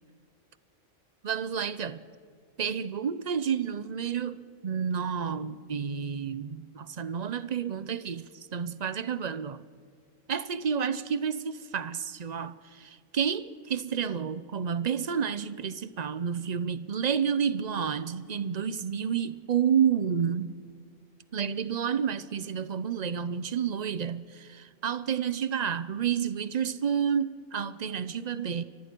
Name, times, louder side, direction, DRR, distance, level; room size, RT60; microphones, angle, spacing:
voice 1, 1.2-2.0 2.6-9.6 10.3-20.6 21.3-28.6, right 7 dB, 55° right, 0.4 m, -30 dB
29.5 x 24.0 x 4.5 m
omnidirectional pair, 1.5 m